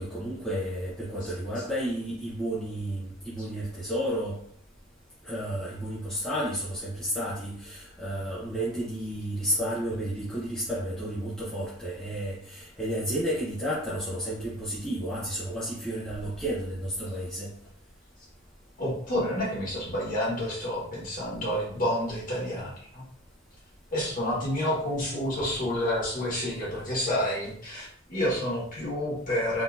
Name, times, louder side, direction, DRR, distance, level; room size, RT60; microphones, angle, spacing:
voice 1, 0.0-4.4 5.2-17.5, equal, 5° left, -9 dB, 0.5 m, -32 dB
voice 2, 18.8-23.0 23.9-29.6, left 1 dB, 40° left, -6 dB, 1.4 m, -29 dB
3.7 x 2.7 x 2.4 m, 0.62 s
head